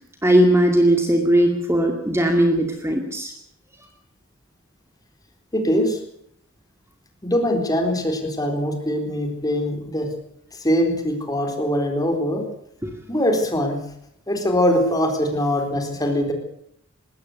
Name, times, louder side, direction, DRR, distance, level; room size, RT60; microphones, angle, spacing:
voice 1, 0.2-3.3 12.8-12.9, right 1 dB, 15° right, 4 dB, 2.3 m, -18 dB
voice 2, 5.5-6.0 7.2-10.1 10.5-12.4 13.1-13.8 14.3-16.3, equal, 20° left, 4 dB, 4.2 m, -22 dB
20.5 x 17.0 x 8.1 m, 0.73 s
head